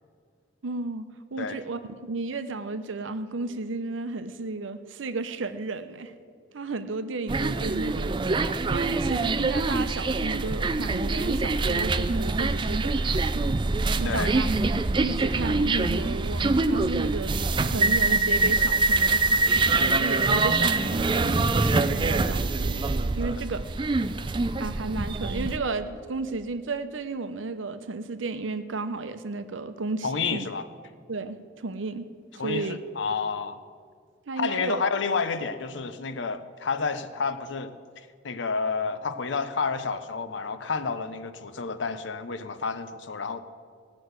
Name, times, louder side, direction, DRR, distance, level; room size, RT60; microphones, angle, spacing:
voice 1, 0.6-6.1 6.5-8.3 8.7-13.6 14.0-14.5 15.0-17.3 17.6-23.6 24.6-30.5 31.1-32.1 32.4-32.8 34.3-34.9, right 3 dB, 85° right, 10 dB, 0.7 m, -33 dB
sound 1, 7.3-25.6, right 3 dB, 25° right, 0.4 m, -24 dB
voice 2, 30.0-30.6 32.4-33.6 34.3-37.7 38.2-43.4, left 5 dB, 70° left, 11 dB, 0.7 m, -30 dB
16.0 x 6.2 x 8.1 m, 2.1 s
head